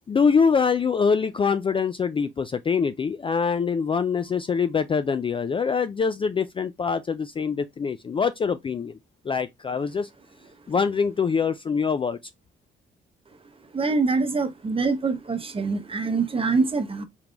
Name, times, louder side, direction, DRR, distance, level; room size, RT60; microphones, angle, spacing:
voice 1, 0.1-9.0 9.2-10.1 10.7-12.2, left 5 dB, 25° left, 0.3 m, -24 dB
voice 2, 13.7-17.0, right 4 dB, 25° right, 0.9 m, -24 dB
4.4 x 3.5 x 2.4 m
cardioid pair, 90°, 20 cm